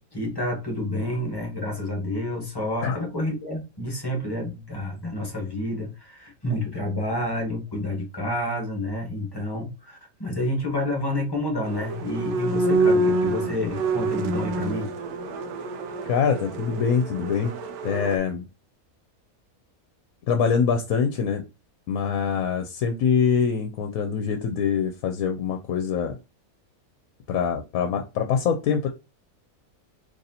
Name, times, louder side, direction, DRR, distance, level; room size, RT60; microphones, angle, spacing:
voice 1, 0.1-14.9, left 1 dB, 20° left, 0.8 m, -29 dB
sound 1, 11.6-18.2, right 2 dB, 85° right, 1.1 m, -27 dB
voice 2, 16.1-17.5 17.8-18.5 20.3-21.4 21.9-26.2 27.3-28.9, left 6 dB, 75° left, 1.0 m, -24 dB
4.0 x 3.0 x 2.7 m
omnidirectional pair, 1.5 m